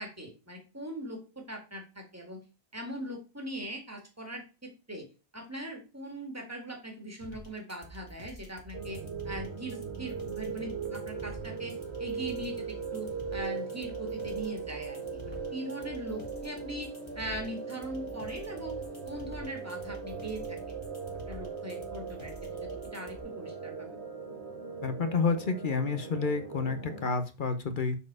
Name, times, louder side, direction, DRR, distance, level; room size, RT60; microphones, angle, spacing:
voice 1, 0.0-2.4 2.7-5.1 5.3-16.9 17.2-18.8 19.1-20.6 21.3-22.3 22.6-24.0, right 1 dB, 15° right, 2 dB, 2.0 m, -41 dB
sound 1, 7.2-23.2, right 1 dB, 25° left, 2.1 m, -48 dB
sound 2, 8.7-27.1, right 5 dB, 80° right, 1.4 m, -39 dB
voice 2, 24.8-28.0, left 4 dB, 50° left, 8 dB, 1.0 m, -29 dB
7.1 x 4.3 x 4.8 m, 0.31 s
omnidirectional pair, 1.1 m